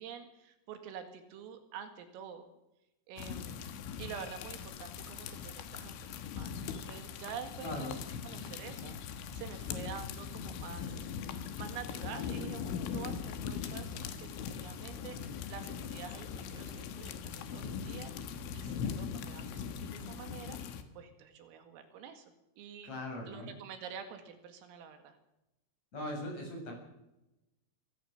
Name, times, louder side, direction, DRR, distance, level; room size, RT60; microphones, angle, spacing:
voice 1, 0.0-2.5 3.1-3.7 4.0-11.1 11.6-20.6 21.0-22.3 22.6-22.9 23.3-25.2, right 7 dB, 80° right, 7 dB, 4.6 m, -47 dB
sound 1, 3.2-20.8, left 7 dB, 75° left, 3.8 m, -41 dB
voice 2, 7.6-7.9 22.8-23.5 25.9-26.7, left 1 dB, 30° left, 1 dB, 8.1 m, -39 dB
25.0 x 17.0 x 6.5 m, 0.93 s
omnidirectional pair, 6.0 m